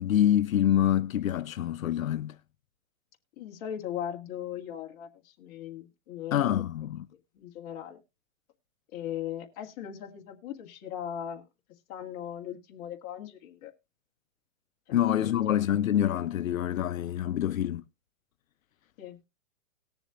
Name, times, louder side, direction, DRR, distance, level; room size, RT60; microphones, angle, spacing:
voice 1, 0.0-2.4 6.3-7.1 14.9-17.8, left 11 dB, 80° left, 0.7 m, -26 dB
voice 2, 3.4-6.6 7.4-8.0 8.9-11.4 11.9-13.7 14.9-15.4 19.0-19.2, left 10 dB, 30° left, 1.9 m, -39 dB
19.5 x 6.9 x 2.4 m
hypercardioid pair, 160°, 40 cm